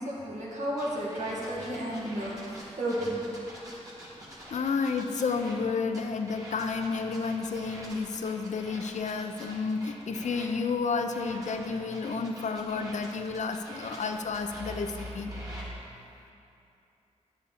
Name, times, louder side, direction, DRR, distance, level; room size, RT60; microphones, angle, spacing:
voice 1, 0.0-3.2, right 1 dB, 75° right, -5 dB, 1.9 m, -33 dB
sound 1, 0.8-5.6 5.9-10.5 11.1-15.7, right 1 dB, 30° right, 1.7 m, -45 dB
voice 2, 4.5-15.3, left 4 dB, 85° left, 6 dB, 0.5 m, -31 dB
9.6 x 7.2 x 4.1 m, 2.8 s
wide cardioid pair, 135°, 12 cm